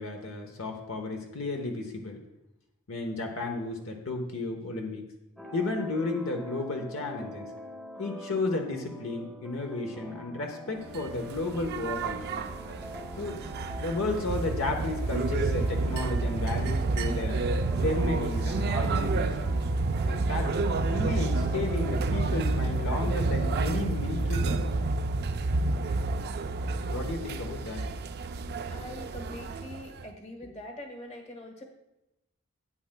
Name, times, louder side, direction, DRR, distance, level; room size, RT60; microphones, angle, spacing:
voice 1, 0.0-2.2 2.9-5.0 5.5-7.5 8.0-12.4 13.2-13.4 13.8-17.4 17.8-19.6 20.1-20.6 20.9-24.7 26.9-27.8, left 2 dB, 65° left, 3 dB, 0.9 m, -33 dB
sound 1, 5.4-22.6, equal, 5° left, 0.9 m, -44 dB
sound 2, 10.9-30.1, right 3 dB, 50° right, 0.4 m, -29 dB
voice 2, 28.7-31.6, left 1 dB, 30° left, 3 dB, 1.2 m, -43 dB
11.0 x 9.0 x 2.2 m, 0.94 s
head